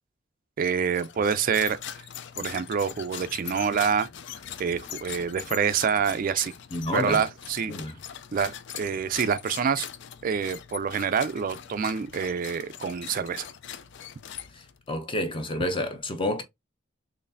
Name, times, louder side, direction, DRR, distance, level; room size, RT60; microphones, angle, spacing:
voice 1, 0.6-1.8 2.4-4.1 4.6-6.5 6.9-7.7 8.3-9.9 10.2-13.5, right 6 dB, 45° right, 0.3 m, -26 dB
sound 1, 0.9-14.9, left 9 dB, 60° left, 0.4 m, -41 dB
voice 2, 6.7-7.2 7.7-8.0 14.9-16.4, left 1 dB, 25° left, 0.7 m, -29 dB
4.0 x 3.2 x 2.6 m
head